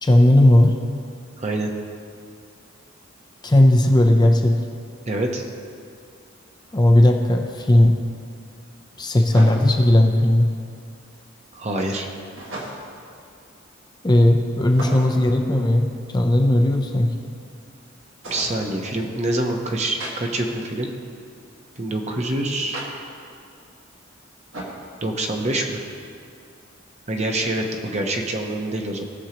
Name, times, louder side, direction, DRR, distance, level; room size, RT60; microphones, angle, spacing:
voice 1, 0.0-0.7 3.4-4.6 6.7-8.0 9.0-10.5 14.0-17.1, left 1 dB, 20° left, 3 dB, 0.6 m, -16 dB
voice 2, 1.4-1.7 5.0-5.4 11.5-12.1 18.3-20.9 21.8-22.8 25.0-25.8 27.1-29.0, right 1 dB, 35° right, 2 dB, 0.9 m, -25 dB
sound 1, 6.7-6.8 9.3-9.9 12.4-13.0 14.7-15.3 18.2-18.6 20.0-20.1 22.7-22.9 24.5-24.8, right 1 dB, 70° right, 1.9 m, -34 dB
18.5 x 6.3 x 3.0 m, 2.4 s
head